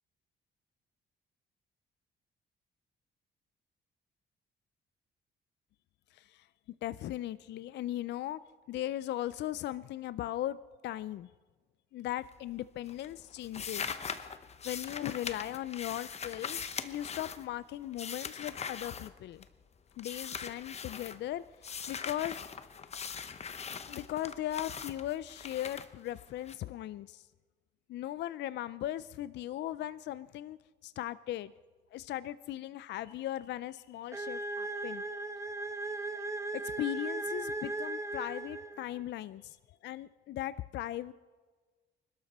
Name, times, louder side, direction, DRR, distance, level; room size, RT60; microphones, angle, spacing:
voice 1, 6.1-6.5 6.8-8.4 8.7-10.6 10.8-11.3 11.9-14.3 14.6-19.4 20.0-22.4 23.9-27.3 27.9-31.5 31.9-35.0 36.5-39.6 39.8-41.1, left 13 dB, 60° left, 16 dB, 0.4 m, -38 dB
sound 1, 12.2-12.6 12.9-19.6 20.0-21.2 21.6-26.5, left 6 dB, 35° left, 0.8 m, -41 dB
sound 2, 34.1-39.0, right 2 dB, 15° right, 1.0 m, -37 dB
27.0 x 12.5 x 4.2 m, 1.4 s
cardioid pair, 135°, 20 cm